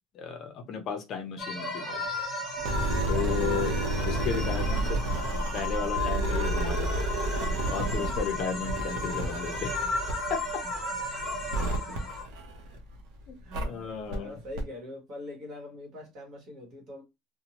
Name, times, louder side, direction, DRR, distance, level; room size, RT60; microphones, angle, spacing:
voice 1, 0.1-2.0 3.1-3.7 4.0-5.0 5.5-7.0 7.7-9.7 10.3-10.4 13.3-14.4, left 7 dB, 35° left, 0.7 m, -34 dB
sound 1, 1.4-12.2, left 2 dB, 5° left, 1.0 m, -34 dB
sound 2, 2.6-13.0 13.5-13.6 14.1-14.2 14.5-14.6, right 2 dB, 65° right, 0.7 m, -31 dB
voice 2, 3.4-3.8 11.7-12.2 13.4-13.6 14.1-17.0, left 1 dB, 40° right, 1.3 m, -44 dB
2.7 x 2.2 x 2.9 m
cardioid pair, 175°, 0 cm